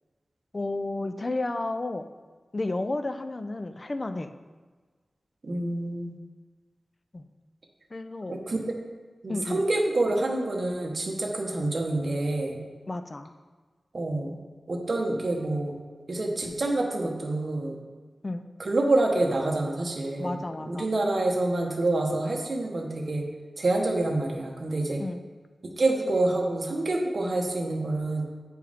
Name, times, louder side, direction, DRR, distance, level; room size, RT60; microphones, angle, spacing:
voice 1, 0.5-2.0 2.5-4.3 7.1-7.2 7.9-8.4 9.3-9.7 12.9-13.3 18.2-18.5 20.2-20.9 25.0-25.2, left 2 dB, 35° left, 9 dB, 0.4 m, -32 dB
voice 2, 5.4-6.1 8.3-8.6 9.2-12.6 13.9-14.4 14.7-15.7 16.1-17.8 18.6-23.3 23.6-25.0 25.8-28.3, right 2 dB, 55° right, 1 dB, 1.1 m, -27 dB
8.5 x 4.6 x 3.5 m, 1.4 s
wide cardioid pair, 90°, 0 cm